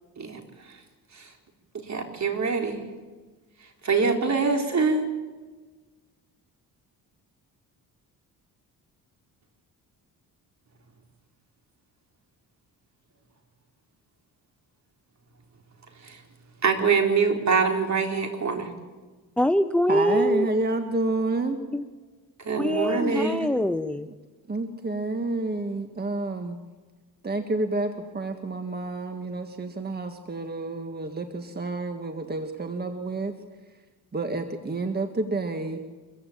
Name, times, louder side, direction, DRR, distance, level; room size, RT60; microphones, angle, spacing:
voice 1, 1.9-2.8 3.8-5.1 16.0-16.2 16.6-18.7 22.4-23.4, right 5 dB, 50° right, 4 dB, 4.1 m, -24 dB
voice 2, 19.4-20.5 21.7-21.8 22.6-24.1, equal, 5° left, 13 dB, 0.7 m, -23 dB
voice 3, 19.9-21.6 24.5-26.6 27.2-33.3 34.1-35.8, right 2 dB, 25° right, 7 dB, 1.8 m, -29 dB
24.5 x 15.0 x 8.7 m, 1.3 s
cardioid pair, 90°, 37 cm